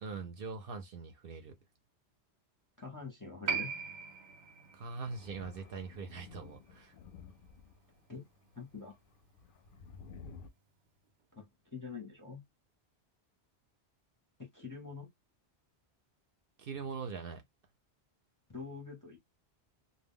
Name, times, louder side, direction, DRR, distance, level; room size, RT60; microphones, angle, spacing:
voice 1, 0.0-1.6 4.7-6.9 16.6-17.4, right 4 dB, 60° right, 0.8 m, -42 dB
voice 2, 2.8-3.7 8.1-8.2 8.6-9.0 11.3-12.4 14.4-15.1 18.5-19.2, left 4 dB, 20° left, 0.6 m, -45 dB
Piano, 3.5-10.4 10.7-10.8, right 5 dB, 90° right, 0.9 m, -43 dB
Thunder, 5.0-8.0 8.5-10.5, left 5 dB, 60° left, 0.7 m, -53 dB
2.2 x 2.1 x 3.5 m
omnidirectional pair, 1.1 m